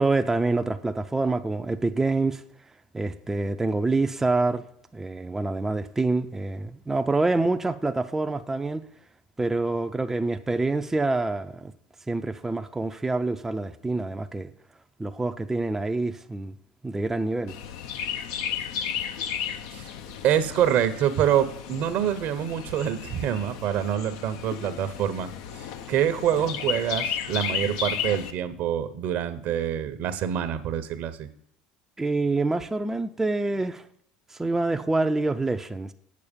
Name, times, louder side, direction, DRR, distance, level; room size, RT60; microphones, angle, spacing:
voice 1, 0.0-2.4 2.9-4.7 4.9-8.8 9.4-11.7 12.1-14.5 15.0-16.5 16.8-17.6 32.0-33.9 34.3-35.9, right 3 dB, 10° right, 0.5 m, -26 dB
Chirp tweet, 17.5-28.3, left 8 dB, 75° left, 0.7 m, -34 dB
voice 2, 20.2-25.3 25.9-31.3, right 10 dB, 60° right, 0.8 m, -26 dB
8.5 x 6.5 x 5.2 m
hypercardioid pair, 85°, 3 cm